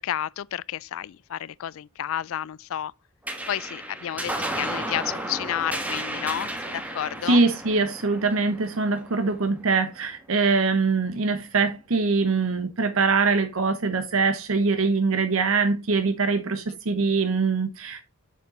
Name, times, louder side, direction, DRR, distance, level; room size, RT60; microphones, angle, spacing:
voice 1, 0.0-2.9 3.5-7.4, left 11 dB, 70° left, 0.3 m, -31 dB
sound 1, 3.3-10.0, right 1 dB, 5° right, 1.2 m, -33 dB
voice 2, 7.3-18.0, right 4 dB, 75° right, 0.9 m, -23 dB
6.9 x 6.6 x 3.7 m
head